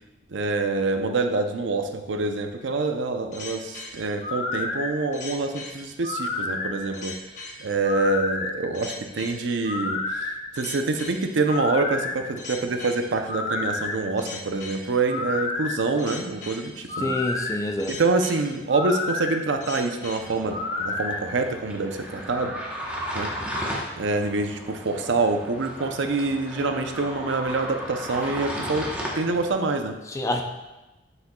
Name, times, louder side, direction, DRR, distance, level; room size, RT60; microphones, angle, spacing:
voice 1, 0.3-7.2 7.6-10.3 10.5-17.1 17.9-22.6 23.1-23.3 24.0-30.0, right 3 dB, 80° right, 6 dB, 0.6 m, -26 dB
sound 1, 3.3-21.2, left 3 dB, 40° left, 1.0 m, -31 dB
voice 2, 17.0-17.9 30.1-30.4, left 1 dB, 15° left, 4 dB, 0.5 m, -27 dB
sound 2, 20.2-29.5, equal, 5° right, 0.9 m, -35 dB
7.2 x 6.5 x 2.3 m, 1.1 s
head